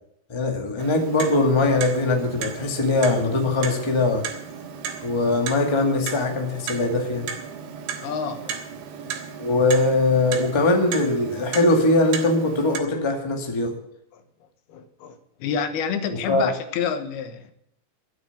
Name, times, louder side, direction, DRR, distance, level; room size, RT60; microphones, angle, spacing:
voice 1, 0.3-4.2 5.0-7.2 9.4-13.7 16.3-16.5, left 2 dB, 10° left, 3 dB, 1.2 m, -21 dB
Clock, 0.8-12.8, right 7 dB, 85° right, 3.5 m, -35 dB
voice 2, 8.0-8.6 14.1-14.2 14.7-17.5, left 6 dB, 80° left, 9 dB, 3.1 m, -29 dB
13.0 x 9.4 x 7.3 m, 0.74 s
omnidirectional pair, 4.5 m